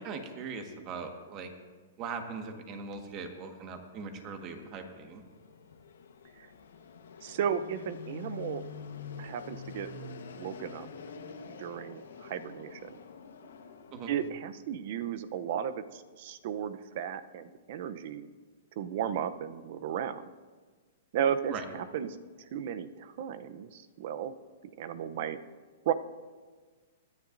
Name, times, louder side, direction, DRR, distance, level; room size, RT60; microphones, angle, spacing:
voice 1, 0.0-1.5 2.0-5.2 13.9-14.1 21.5-21.6, right 5 dB, 35° right, 5 dB, 1.5 m, -40 dB
Fixed-wing aircraft airplane, 4.1-14.3, left 5 dB, 85° left, 1.2 m, -47 dB
voice 2, 7.2-8.6 9.2-9.9 10.3-10.9 11.5-12.9 14.1-18.3 18.8-20.2 21.1-24.3 24.8-25.4 25.9-26.0, right 9 dB, 55° right, 13 dB, 0.7 m, -34 dB
21.0 x 10.5 x 2.6 m, 1.4 s
hypercardioid pair, 145°, 0 cm